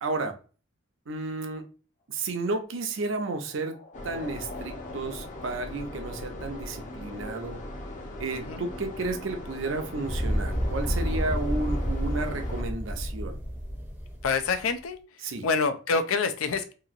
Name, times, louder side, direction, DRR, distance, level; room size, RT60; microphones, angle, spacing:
voice 1, 0.0-0.4 1.1-1.6 2.1-3.8 4.0-7.6 8.2-13.4 15.2-15.5, right 3 dB, 65° right, 0.6 m, -32 dB
sound 1, 2.0-6.8, left 4 dB, 60° left, 1.3 m, -49 dB
sound 2, 3.9-12.6, left 1 dB, 40° left, 0.6 m, -39 dB
sound 3, 10.0-14.5, equal, 10° right, 0.6 m, -30 dB
voice 2, 14.2-15.0 15.4-16.7, left 4 dB, 85° left, 0.4 m, -27 dB
2.9 x 2.7 x 2.4 m
head